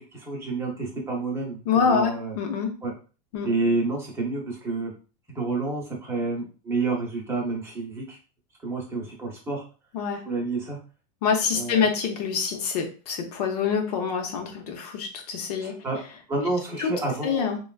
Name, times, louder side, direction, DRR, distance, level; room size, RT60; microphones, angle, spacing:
voice 1, 0.0-2.3 2.8-2.9 3.4-4.9 5.3-8.2 8.6-9.6 10.2-10.8 11.5-11.9 15.6-16.0 16.3-17.5, right 3 dB, 10° right, -2 dB, 0.9 m, -29 dB
voice 2, 1.7-2.7 3.3-3.5 9.9-10.2 11.2-15.7 16.8-16.9 17.2-17.6, left 6 dB, 65° left, 4 dB, 0.9 m, -26 dB
3.3 x 2.4 x 2.3 m, 0.36 s
supercardioid pair, 150°, 21 cm